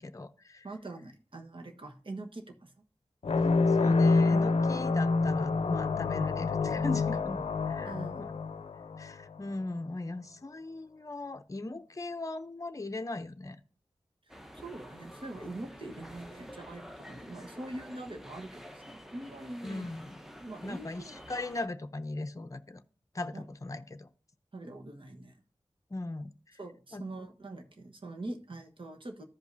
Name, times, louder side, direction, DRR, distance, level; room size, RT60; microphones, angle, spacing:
voice 1, 0.0-0.7 3.7-8.3 9.0-13.6 19.6-20.2 20.6-22.8 23.1-24.1 25.9-26.3 26.9-27.0, left 2 dB, 35° left, 8 dB, 0.6 m, -38 dB
voice 2, 0.6-2.8 7.8-8.4 14.5-19.9 20.4-21.2 23.3-23.4 24.5-25.4 26.6-29.2, right 2 dB, 55° right, 3 dB, 1.3 m, -43 dB
sound 1, 3.2-9.4, left 3 dB, 80° left, 0.5 m, -27 dB
sound 2, 14.3-21.7, equal, 5° right, 0.8 m, -49 dB
14.5 x 5.2 x 2.7 m, 0.39 s
wide cardioid pair, 80°, 10 cm